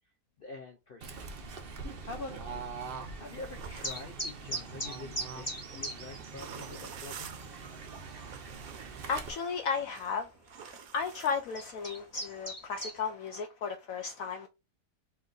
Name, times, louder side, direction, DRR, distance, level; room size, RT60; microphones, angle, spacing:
voice 1, 0.4-1.3 2.0-2.7 3.2-7.3, left 3 dB, 90° left, 0.4 m, -46 dB
Fowl / Bird, 1.0-9.3, right 4 dB, 50° right, 0.7 m, -43 dB
seashore tunisia - stone strong, 3.2-13.1, right 7 dB, 70° right, 1.1 m, -51 dB
sound 1, 3.8-5.9 6.2-6.3 6.9-7.0 7.2-7.6 8.2-8.3 9.7-9.8 10.6-10.8 11.3-12.9, right 1 dB, 10° left, 1.0 m, -37 dB
voice 2, 9.1-10.3 10.6-14.5, left 5 dB, 70° left, 0.9 m, -34 dB
4.4 x 2.6 x 3.8 m
omnidirectional pair, 1.7 m